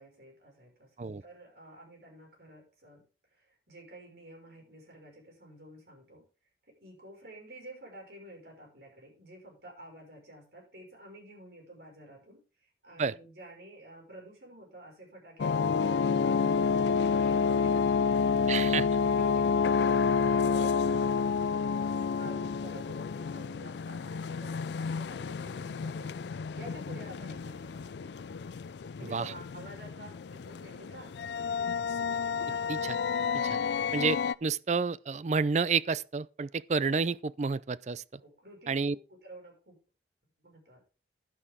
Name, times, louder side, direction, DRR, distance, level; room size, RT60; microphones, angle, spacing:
voice 1, 0.0-3.0 3.3-6.2 6.7-18.3 19.0-26.2 26.6-28.2 29.0-31.3 38.2-39.8 40.4-40.9, right 1 dB, 65° right, 5.9 m, -51 dB
sound 1, 15.4-34.3, left 5 dB, 75° left, 0.4 m, -29 dB
voice 2, 18.5-18.9 29.1-29.2 32.7-33.0 33.3-33.6 33.9-38.0 38.7-39.0, right 5 dB, 40° right, 0.4 m, -30 dB
11.0 x 10.0 x 3.7 m
head